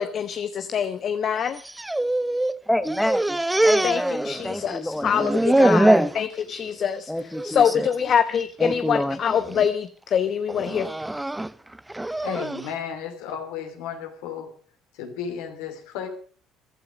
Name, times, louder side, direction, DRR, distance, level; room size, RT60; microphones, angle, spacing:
voice 1, 0.0-1.6 3.8-7.1 7.4-10.9, left 8 dB, 50° left, 10 dB, 0.9 m, -24 dB
sound 1, 1.5-2.6 2.8-4.7 5.0-6.2 6.6-7.0 7.3-7.5 8.4-8.8 9.3-9.7 10.5-12.7, right 1 dB, 10° right, 0.7 m, -23 dB
voice 2, 2.7-3.4 3.6-6.1 7.1-7.9 8.6-9.2, left 1 dB, 5° left, 11 dB, 1.3 m, -27 dB
voice 3, 12.2-14.5 15.0-16.1, left 7 dB, 75° left, 5 dB, 2.9 m, -33 dB
15.5 x 12.0 x 5.2 m, 0.43 s
hypercardioid pair, 60°, 0 cm